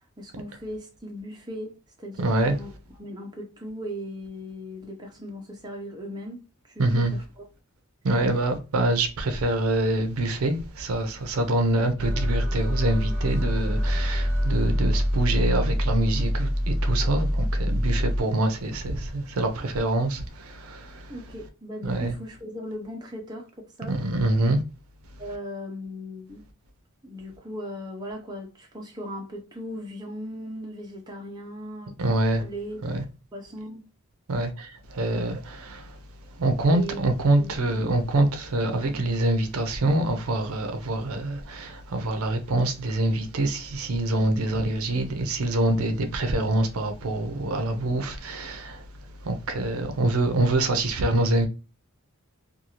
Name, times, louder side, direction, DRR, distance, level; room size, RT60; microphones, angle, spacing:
voice 1, 0.2-1.7 2.0-2.7 3.0-7.4 21.1-24.0 25.2-26.4 27.0-32.1 32.4-32.8 33.3-33.9 36.7-37.0 37.3-37.9 38.9-39.0, equal, 20° right, 0.6 m, -38 dB
voice 2, 2.2-2.6 6.8-7.1 8.0-21.2 21.8-22.1 23.9-24.6 32.0-32.4 32.8-33.0 34.3-36.0 36.4-51.5, right 2 dB, 75° right, 0.5 m, -25 dB
sound 1, 12.0-18.2, equal, 15° left, 1.2 m, -25 dB
2.6 x 2.4 x 2.8 m
head